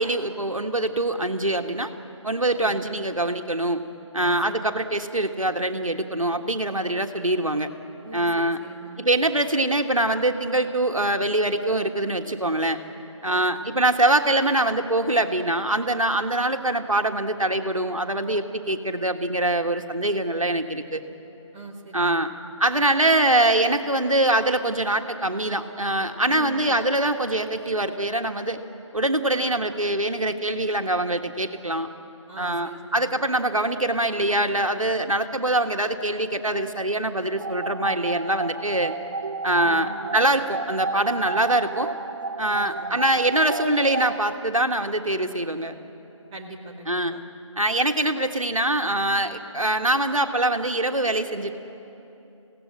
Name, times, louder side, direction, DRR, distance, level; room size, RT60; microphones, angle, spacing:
voice 1, 0.0-1.9 2.2-3.8 4.1-7.7 8.1-8.6 9.0-12.8 13.2-21.0 21.9-22.3 22.6-28.6 28.9-31.9 32.4-38.9 39.4-41.9 42.4-45.7 46.9-47.1 47.6-51.6, right 1 dB, 85° right, 6 dB, 1.6 m, -23 dB
voice 2, 4.2-4.6 8.0-9.0 13.2-13.7 18.2-18.4 21.5-22.3 26.3-26.8 32.3-33.0 39.6-39.9 42.5-43.0 46.3-47.2, right 2 dB, 10° right, -3 dB, 1.4 m, -42 dB
sound 1, 37.4-44.3, right 3 dB, 35° right, 0.6 m, -32 dB
25.5 x 17.0 x 9.8 m, 3.0 s
figure-of-eight pair, 155°, 17 cm